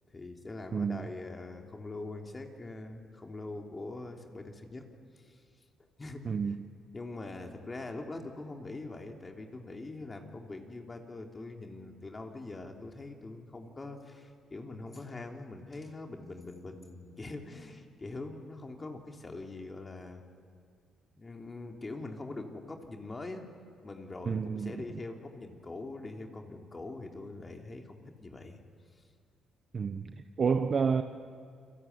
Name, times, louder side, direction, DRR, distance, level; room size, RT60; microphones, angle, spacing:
voice 1, 0.1-4.9 5.2-5.4 6.0-6.3 6.9-20.2 21.1-23.4 23.8-28.6, left 2 dB, 25° left, 3 dB, 3.1 m, -43 dB
voice 2, 0.7-1.1 6.2-6.6 24.2-25.0 29.7-31.0, right 5 dB, 45° right, 8 dB, 1.0 m, -30 dB
29.5 x 21.0 x 9.5 m, 2.3 s
cardioid pair, 90°, 0 cm